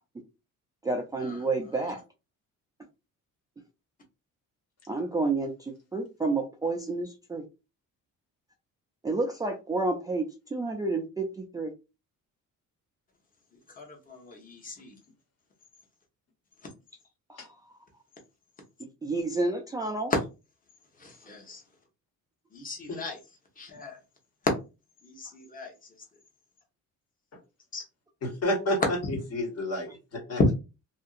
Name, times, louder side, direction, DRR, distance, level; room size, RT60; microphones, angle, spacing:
voice 1, 0.8-2.0 4.9-7.4 9.0-10.3 10.5-11.7 17.3-17.5 18.8-20.1, right 3 dB, 10° right, 1 dB, 0.4 m, -30 dB
voice 2, 13.8-14.9 20.1-20.2 21.0-21.6 22.5-23.2 23.6-24.0 25.0-25.7 27.7-27.8, left 3 dB, 25° left, 2 dB, 1.0 m, -37 dB
voice 3, 28.2-30.5, left 1 dB, 50° left, 1 dB, 1.4 m, -31 dB
2.8 x 2.6 x 2.4 m, 0.28 s
cardioid pair, 135°, 32 cm